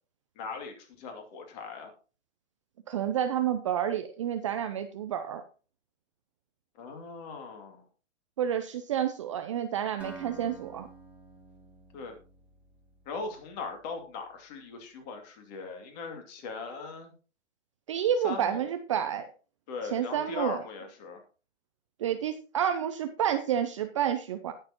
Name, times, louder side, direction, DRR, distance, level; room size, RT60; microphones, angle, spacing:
voice 1, 0.4-1.9 6.7-7.9 11.9-12.1 13.1-17.1 18.2-18.7 19.7-21.2, left 4 dB, 35° left, 4 dB, 2.6 m, -39 dB
voice 2, 2.9-5.4 8.4-10.9 17.9-19.3 19.9-20.6 22.0-24.5, right 9 dB, 25° right, 8 dB, 0.5 m, -29 dB
Acoustic guitar, 10.0-13.8, right 4 dB, 5° right, 2.0 m, -50 dB
19.5 x 6.7 x 2.9 m, 0.36 s
hypercardioid pair, 145°, 37 cm